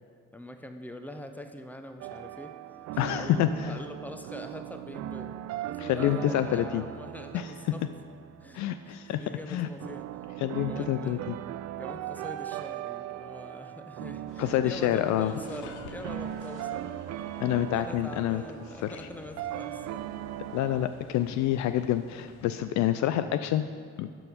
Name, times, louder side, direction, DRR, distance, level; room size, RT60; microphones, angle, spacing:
voice 1, 0.3-2.5 2.9-5.4 5.6-7.9 8.4-10.1 10.7-11.4 11.8-20.1, left 1 dB, 5° left, 7 dB, 1.0 m, -43 dB
sound 1, 2.0-20.9, right 13 dB, 50° right, 0.4 m, -39 dB
voice 2, 3.0-3.8 5.8-6.8 7.3-7.5 8.5-9.2 9.5-9.7 10.4-11.4 14.4-15.3 17.4-18.4 18.8-18.9 20.5-23.6 24.0-24.1, left 12 dB, 55° left, 11 dB, 0.5 m, -27 dB
sound 2, 14.3-22.5, left 6 dB, 80° left, 0.8 m, -50 dB
12.0 x 6.1 x 5.2 m, 2.3 s
figure-of-eight pair, 45°, 34 cm